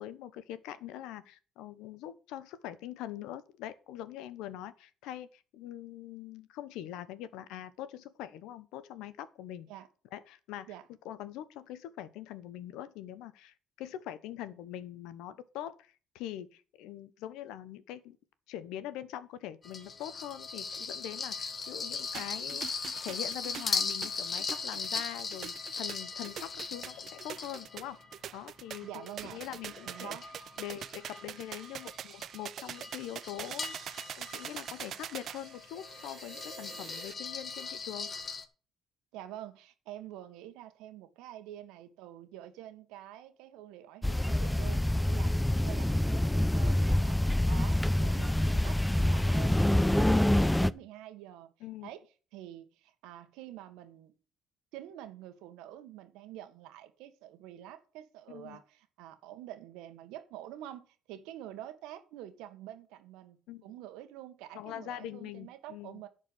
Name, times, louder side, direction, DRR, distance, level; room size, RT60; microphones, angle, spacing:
voice 1, 0.0-9.7 10.1-10.7 11.0-18.2 18.5-28.0 28.3-30.2 30.6-38.1 51.6-51.9 58.3-58.6 63.5-63.6 64.5-66.0, left 12 dB, 80° left, 0.9 m, -43 dB
sound 1, 19.6-28.2 28.7-38.4, left 5 dB, 40° left, 1.7 m, -39 dB
sound 2, 22.1-37.1, right 9 dB, 60° right, 0.5 m, -44 dB
voice 2, 28.8-29.4 29.8-30.2 39.1-51.5 51.8-52.0 52.3-54.2 54.7-66.1, right 12 dB, 80° right, 1.5 m, -47 dB
sound 3, 44.0-50.7, left 1 dB, 5° left, 0.6 m, -26 dB
10.5 x 4.7 x 7.9 m
supercardioid pair, 65°, 0 cm